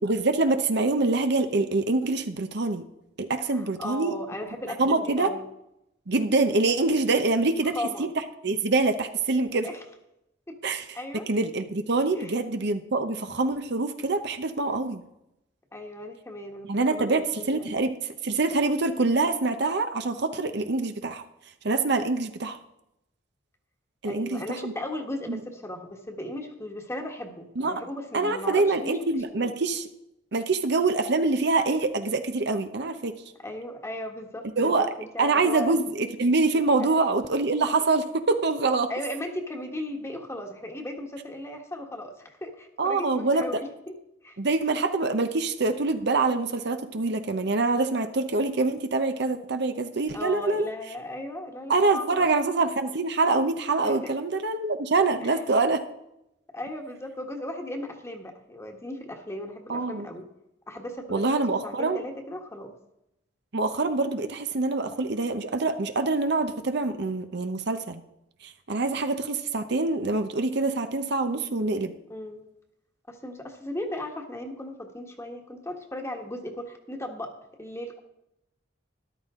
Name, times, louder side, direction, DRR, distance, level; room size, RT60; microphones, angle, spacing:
voice 1, 0.0-2.8 3.2-4.1 4.8-5.3 6.1-8.1 8.4-9.7 10.6-10.9 11.3-15.0 16.6-17.9 18.2-21.2 21.6-22.6 24.0-24.7 25.3-25.4 27.6-27.7 28.1-29.9 30.3-33.1 34.6-34.9 35.2-38.9 42.8-43.6 44.4-50.7 51.7-55.8 59.7-60.1 61.1-62.0 63.5-68.0 68.4-71.9, right 3 dB, 65° right, 8 dB, 0.9 m, -25 dB
voice 2, 3.5-5.5 7.6-8.1 9.6-9.8 10.5-10.6 10.9-11.3 12.1-12.3 15.7-17.7 24.0-29.0 29.3-29.5 33.4-35.8 36.9-37.0 38.9-44.0 44.2-44.4 50.1-52.3 53.8-54.1 55.2-55.4 56.5-60.3 60.7-62.8 72.1-72.4 73.1-78.0, left 1 dB, 15° left, 3 dB, 1.4 m, -37 dB
13.5 x 11.5 x 3.7 m, 0.85 s
head